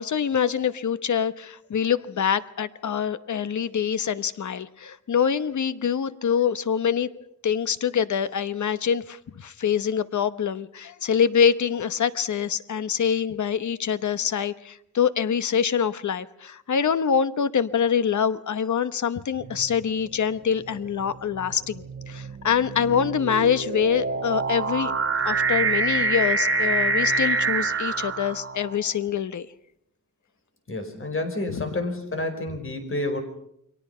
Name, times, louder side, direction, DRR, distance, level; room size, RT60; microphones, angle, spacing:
voice 1, 0.0-7.1 7.4-24.9 25.2-29.5 31.5-31.6, left 7 dB, 60° left, 13 dB, 1.0 m, -25 dB
sound 1, 19.4-19.8 20.7-28.9, right 3 dB, 40° right, 1.5 m, -26 dB
voice 2, 30.7-33.2, left 2 dB, 40° left, 6 dB, 4.8 m, -29 dB
29.5 x 22.5 x 5.6 m, 0.73 s
wide cardioid pair, 160°, 33 cm